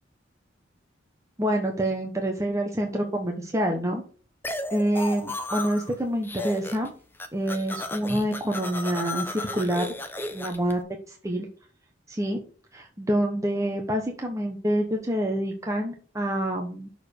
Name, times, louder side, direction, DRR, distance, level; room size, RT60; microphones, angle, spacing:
voice 1, 1.4-4.0 4.7-6.9 7.3-9.9 10.3-10.8 11.1-11.5 12.1-12.4 12.7-16.9, right 1 dB, 15° right, 2 dB, 1.0 m, -27 dB
sound 1, 4.4-5.9 6.2-6.9 7.1-10.7, left 2 dB, 10° left, 1.0 m, -34 dB
6.7 x 4.9 x 6.5 m, 0.42 s
head